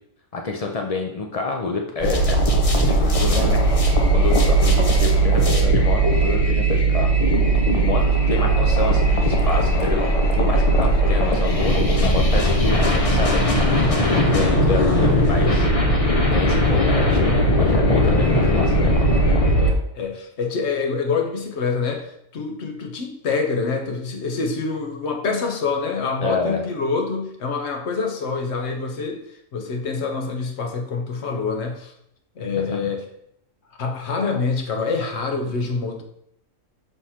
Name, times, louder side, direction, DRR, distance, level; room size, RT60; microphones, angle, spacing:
voice 1, 0.3-3.6 4.1-7.1 7.7-10.1 10.4-13.6 14.1-15.7 16.3-19.0 26.2-26.6 32.7-32.9, left 4 dB, 75° left, 1 dB, 0.3 m, -27 dB
sound 1, 2.0-19.7, right 1 dB, 35° left, 0.6 m, -18 dB
voice 2, 19.6-29.2 29.5-31.9 32.4-33.0 33.8-36.0, left 4 dB, 55° left, 3 dB, 1.1 m, -26 dB
5.5 x 3.1 x 5.6 m, 0.76 s
omnidirectional pair, 1.5 m